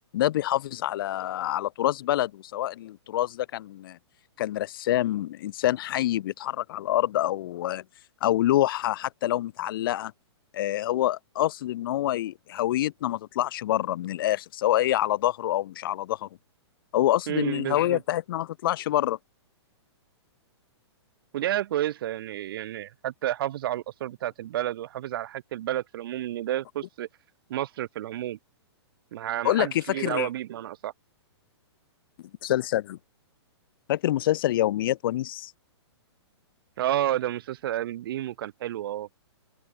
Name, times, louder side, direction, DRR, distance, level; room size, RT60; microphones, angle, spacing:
voice 1, 0.1-4.0 4.4-7.8 8.2-10.1 10.5-16.3 16.9-19.2 29.4-30.3 32.4-33.0 33.9-35.5, left 14 dB, 50° left, 2.2 m, -26 dB
voice 2, 17.3-18.0 21.3-27.1 27.5-28.4 29.1-30.9 36.8-39.1, right 13 dB, 55° right, 0.7 m, -30 dB
open air
hypercardioid pair, 155°, 15 cm